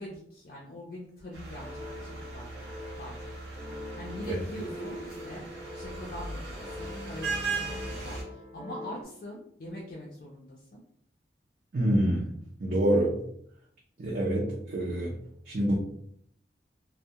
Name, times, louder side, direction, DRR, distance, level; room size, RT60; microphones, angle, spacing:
voice 1, 0.0-3.3 4.0-5.5 5.7-10.8, left 1 dB, 50° left, -4 dB, 0.4 m, -43 dB
sound 1, 1.3-8.2, right 3 dB, 85° right, 0.7 m, -38 dB
sound 2, 1.6-9.0, left 1 dB, 5° right, 0.7 m, -43 dB
voice 2, 11.7-12.3 12.6-13.2 14.0-15.1 15.5-15.8, right 1 dB, 50° right, -4 dB, 0.5 m, -26 dB
2.2 x 2.0 x 2.7 m, 0.67 s
head